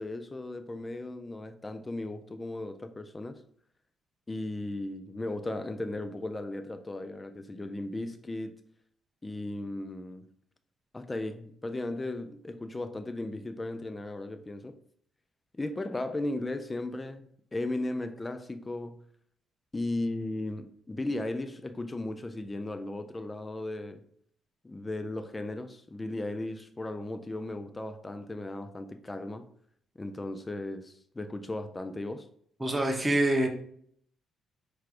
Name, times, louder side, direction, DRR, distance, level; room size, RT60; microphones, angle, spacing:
voice 1, 0.0-3.4 4.3-8.5 9.2-10.3 10.9-14.8 15.5-19.0 19.7-24.0 24.6-29.5 30.0-32.3, left 2 dB, 15° left, 0.3 m, -36 dB
voice 2, 32.6-33.5, right 1 dB, 10° right, 0.7 m, -25 dB
4.7 x 4.6 x 2.5 m
cardioid pair, 150°, 0 cm